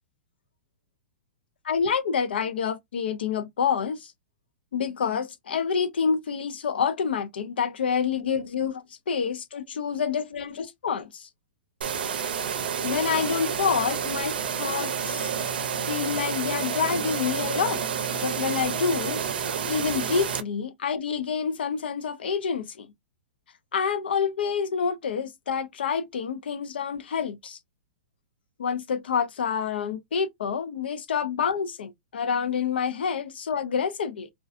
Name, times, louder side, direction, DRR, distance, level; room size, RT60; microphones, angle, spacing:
voice 1, 1.6-4.1 4.7-11.3 12.8-15.3 15.9-17.9 18.1-19.2 19.7-22.9 23.7-27.6 28.6-34.3, left 6 dB, 90° left, 0.5 m, -28 dB
sound 1, 11.8-20.4, right 7 dB, 70° right, 0.5 m, -29 dB
2.5 x 2.2 x 2.4 m
hypercardioid pair, 180°, 5 cm